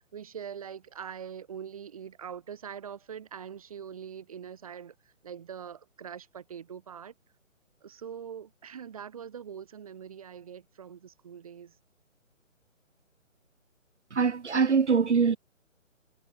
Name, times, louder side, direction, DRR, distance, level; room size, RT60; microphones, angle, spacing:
voice 1, 0.0-7.1 7.8-11.8, right 8 dB, 25° right, 4.0 m, -43 dB
voice 2, 14.1-15.4, right 5 dB, 60° right, 1.8 m, -23 dB
hypercardioid pair, 180°, 40 cm